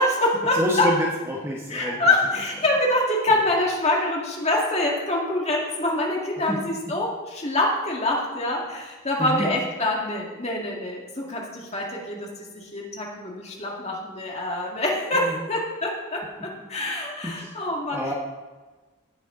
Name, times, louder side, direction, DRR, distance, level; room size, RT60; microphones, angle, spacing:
voice 1, 0.0-0.9 1.7-18.0, left 1 dB, 30° left, -2 dB, 2.0 m, -25 dB
voice 2, 0.5-2.1 6.5-6.9 9.2-9.5 15.1-15.5 17.2-17.5 17.9-18.1, equal, 15° right, -3 dB, 1.3 m, -28 dB
17.0 x 6.8 x 3.9 m, 1.3 s
head